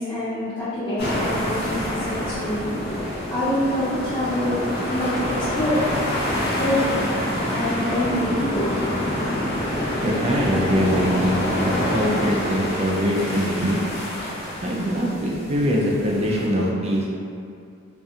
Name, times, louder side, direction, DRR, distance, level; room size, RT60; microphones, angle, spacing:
voice 1, 0.0-2.7 3.3-5.8 6.5-7.0 7.5-9.8, left 1 dB, 25° left, -14 dB, 0.8 m, -26 dB
sound 1, 1.0-16.5, left 1 dB, 50° left, 0.5 m, -26 dB
voice 2, 10.0-13.8 14.6-17.1, equal, 30° right, -3 dB, 0.3 m, -23 dB
2.4 x 2.2 x 2.7 m, 2.4 s
head